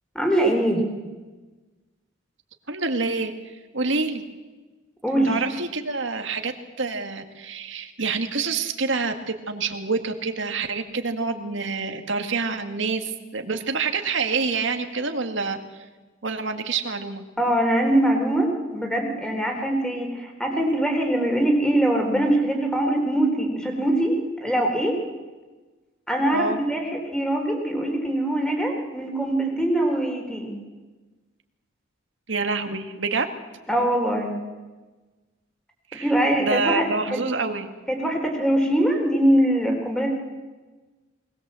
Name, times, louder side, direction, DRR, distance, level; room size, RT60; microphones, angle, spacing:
voice 1, 0.1-0.8 5.0-5.4 17.4-25.0 26.1-30.6 33.7-34.3 36.0-37.2 37.9-40.1, right 1 dB, 5° left, 2 dB, 4.0 m, -23 dB
voice 2, 2.7-3.3 3.7-4.2 5.3-6.5 6.8-15.6 16.2-17.2 26.3-26.6 32.3-33.3 35.9-36.0 36.4-37.7, right 4 dB, 70° right, 6 dB, 2.0 m, -27 dB
21.5 x 20.0 x 7.7 m, 1.3 s
head